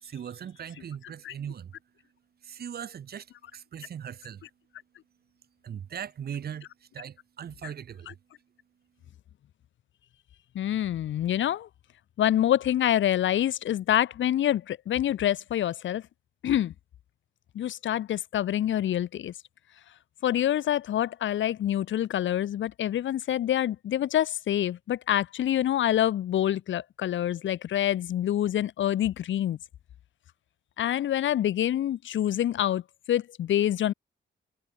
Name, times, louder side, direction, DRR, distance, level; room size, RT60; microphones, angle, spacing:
voice 1, 0.0-1.7 2.4-3.3 3.5-4.4 5.6-8.2, right 8 dB, 55° right, 1.0 m, -39 dB
voice 2, 10.5-11.7 12.2-16.0 16.4-16.7 17.5-19.3 20.2-29.6 30.8-32.8 33.1-33.9, left 11 dB, 75° left, 0.9 m, -26 dB
cardioid pair, 125°, 20 cm